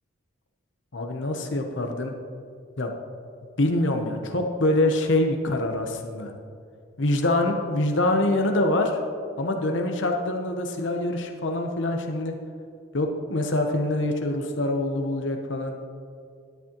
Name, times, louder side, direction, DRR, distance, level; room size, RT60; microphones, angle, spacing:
voice 1, 0.9-2.1 2.8-2.9 3.6-6.3 7.0-9.0 9.4-12.3 12.9-15.7, left 1 dB, 75° left, 3 dB, 0.9 m, -25 dB
12.5 x 10.5 x 3.0 m, 2.4 s
head